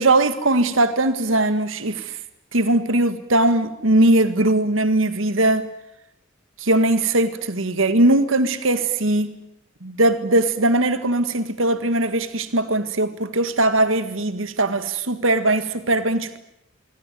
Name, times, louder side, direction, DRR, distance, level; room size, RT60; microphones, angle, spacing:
voice 1, 0.0-2.2 2.5-5.7 6.6-9.3 9.8-16.4, right 2 dB, 85° right, 1.8 m, -20 dB
25.0 x 24.0 x 9.3 m
head